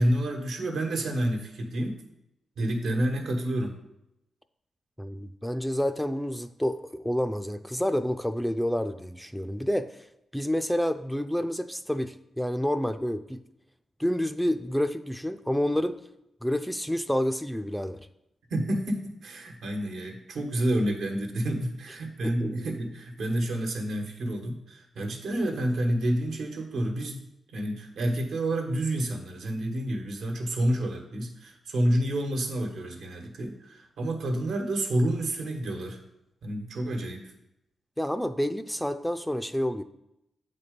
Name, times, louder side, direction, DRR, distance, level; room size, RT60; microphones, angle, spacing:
voice 1, 0.0-2.0 2.6-3.8 18.5-27.2 27.5-36.0 36.4-37.3, right 1 dB, 85° right, 3 dB, 1.2 m, -29 dB
voice 2, 5.0-10.1 10.3-13.4 14.0-16.0 16.4-18.0 22.2-22.5 38.0-39.8, equal, ahead, 9 dB, 0.3 m, -29 dB
7.8 x 4.3 x 5.1 m, 0.84 s
cardioid pair, 115°, 0 cm